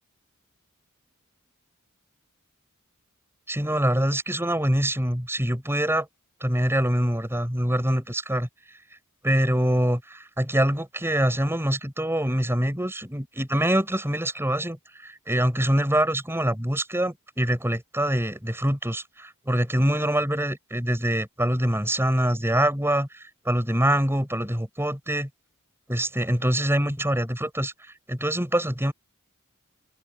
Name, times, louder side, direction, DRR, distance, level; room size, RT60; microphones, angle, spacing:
voice 1, 3.5-6.1 6.4-8.5 9.2-14.8 15.0-25.3 25.9-27.7 28.1-28.9, right 1 dB, 10° right, 8.0 m, -24 dB
open air
head